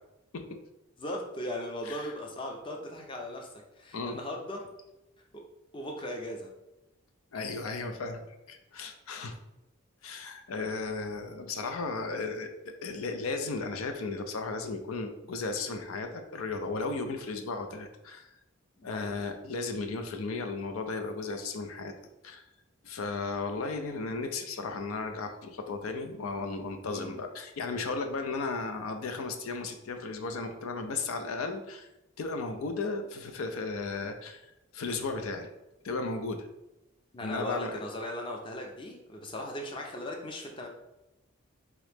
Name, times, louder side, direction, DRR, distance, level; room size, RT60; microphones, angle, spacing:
voice 1, 1.0-4.7 5.3-5.4 5.7-6.5 18.8-19.1 26.8-27.2 37.1-40.7, left 1 dB, 25° left, 1 dB, 0.5 m, -38 dB
voice 2, 7.3-8.2 8.5-9.4 10.0-18.3 18.8-21.9 22.2-22.4 22.8-31.9 32.2-34.4 34.7-35.5 35.8-36.5 37.2-37.8, left 3 dB, 85° left, 6 dB, 0.5 m, -35 dB
3.6 x 3.0 x 3.4 m, 0.92 s
head